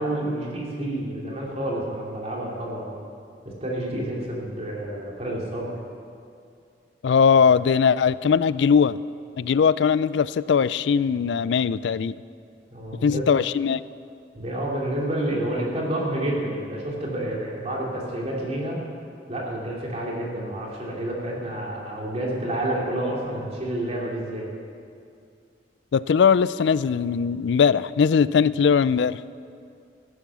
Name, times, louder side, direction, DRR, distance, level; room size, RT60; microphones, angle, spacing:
voice 1, 0.0-3.0 3.4-5.8 12.7-13.2 14.3-18.8 19.3-24.5, right 1 dB, 35° right, -3 dB, 2.9 m, -29 dB
voice 2, 7.0-9.0 9.4-12.1 13.0-13.8 25.9-29.2, left 6 dB, 70° left, 18 dB, 0.3 m, -20 dB
14.0 x 11.0 x 7.0 m, 2.4 s
head